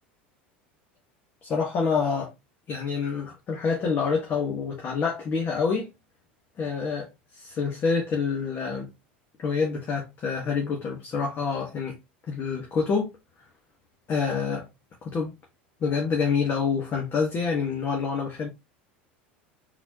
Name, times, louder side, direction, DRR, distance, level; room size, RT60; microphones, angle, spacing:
voice 1, 1.4-2.3 2.7-5.9 6.6-8.9 9.4-12.0 12.3-13.1 14.1-14.7 15.0-15.3 15.8-18.5, left 5 dB, 40° left, 1.5 m, -27 dB
4.2 x 4.1 x 2.9 m
hypercardioid pair, 80°, 6 cm